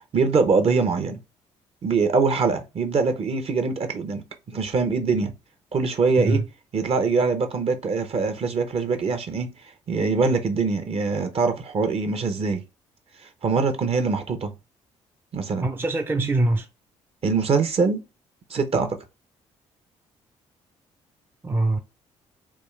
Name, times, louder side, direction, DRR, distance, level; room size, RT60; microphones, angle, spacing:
voice 1, 0.1-1.2 1.8-5.3 5.7-6.4 6.7-9.5 9.9-12.6 13.4-14.5 15.3-15.7 17.2-18.0 18.5-18.9, right 4 dB, 45° right, 0.8 m, -23 dB
voice 2, 15.6-16.7 21.4-21.8, right 2 dB, 15° right, 0.5 m, -23 dB
3.5 x 2.3 x 3.2 m
supercardioid pair, 65°, 13 cm